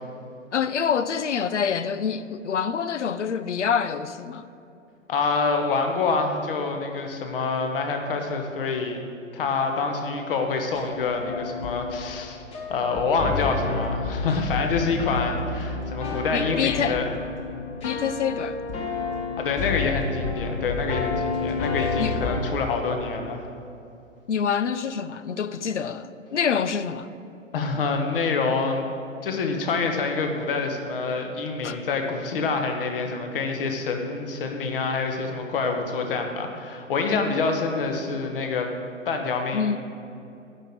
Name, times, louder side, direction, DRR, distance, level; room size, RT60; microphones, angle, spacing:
voice 1, 0.5-4.5 16.3-17.0 17.8-18.6 22.0-22.2 24.3-27.1 31.6-31.8 39.5-39.8, left 7 dB, 65° left, 0.6 m, -26 dB
voice 2, 5.1-9.0 9.3-12.4 12.7-17.1 19.4-23.4 27.5-28.9 29.2-38.7 39.0-39.7, left 4 dB, 45° left, 1.4 m, -26 dB
sound 1, 10.7-22.4, left 4 dB, 15° left, 1.1 m, -30 dB
9.7 x 6.3 x 8.7 m
figure-of-eight pair, 115°, 38 cm